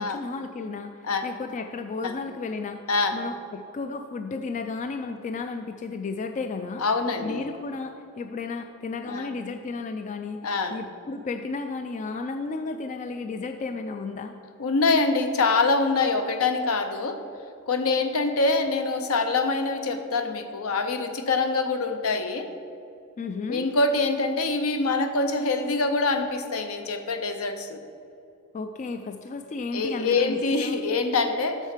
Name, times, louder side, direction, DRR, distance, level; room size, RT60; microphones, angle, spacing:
voice 1, 0.0-2.8 3.1-6.8 7.2-10.4 10.7-14.3 23.2-23.7 28.5-30.8, left 4 dB, 35° left, 7 dB, 0.3 m, -33 dB
voice 2, 6.8-7.4 9.1-9.3 10.4-10.8 14.6-17.2 17.7-22.5 23.5-27.8 29.7-31.6, left 3 dB, 70° left, 8 dB, 0.7 m, -25 dB
7.4 x 6.5 x 5.0 m, 2.6 s
head